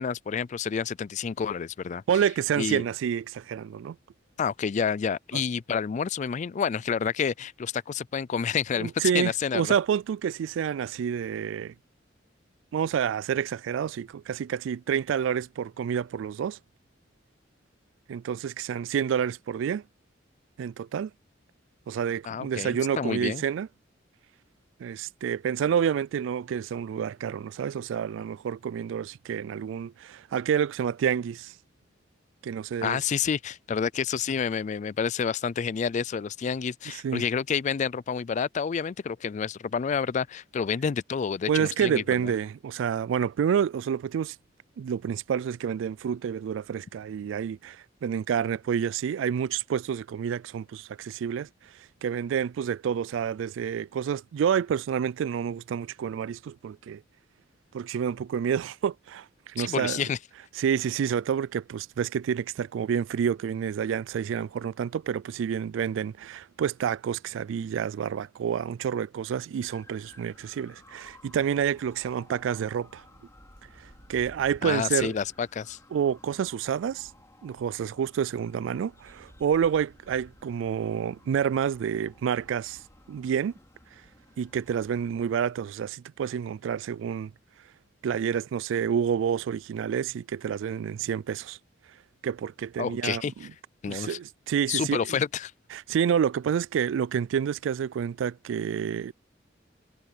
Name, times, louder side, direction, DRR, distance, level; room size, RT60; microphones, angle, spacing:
voice 1, 0.0-2.0 2.6-2.8 4.4-9.7 22.3-23.4 32.8-42.3 59.6-60.2 74.6-75.8 92.8-93.5 93.8-94.2 94.7-95.5, left 6 dB, 40° left, 0.3 m, -29 dB
voice 2, 2.1-4.0 5.3-5.4 8.8-11.7 12.7-16.6 18.1-19.8 20.6-21.1 21.9-23.7 24.8-31.5 32.4-33.0 37.0-37.2 41.5-44.4 44.8-51.5 52.0-57.0 57.7-60.0 60.6-73.0 73.8-75.1 75.9-77.1 77.4-82.8 83.1-83.5 84.4-87.3 88.0-91.6 92.2-93.2 93.9-95.2 95.7-99.1, right 8 dB, 80° right, 0.3 m, -28 dB
sound 1, 69.6-85.3, left 1 dB, 15° left, 5.4 m, -55 dB
head